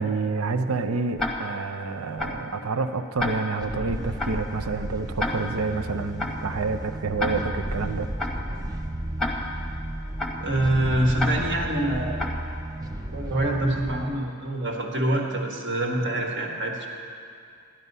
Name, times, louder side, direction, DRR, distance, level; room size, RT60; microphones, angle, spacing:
voice 1, 0.0-8.1, right 4 dB, 70° right, 8 dB, 0.6 m, -28 dB
Tick-tock, 1.2-1.7 2.2-2.5 3.2-3.7 4.2-4.5 5.2-5.7 6.2-6.5 7.2-7.7 8.2-8.5 9.2-9.7 10.2-10.5 11.2-11.7 12.2-12.5, left 2 dB, ahead, 1.0 m, -30 dB
sound 1, 3.6-14.1, right 1 dB, 15° right, 0.5 m, -33 dB
voice 2, 10.4-12.2 13.1-16.9, right 1 dB, 50° right, 0 dB, 1.6 m, -25 dB
12.0 x 11.5 x 5.5 m, 2.4 s
head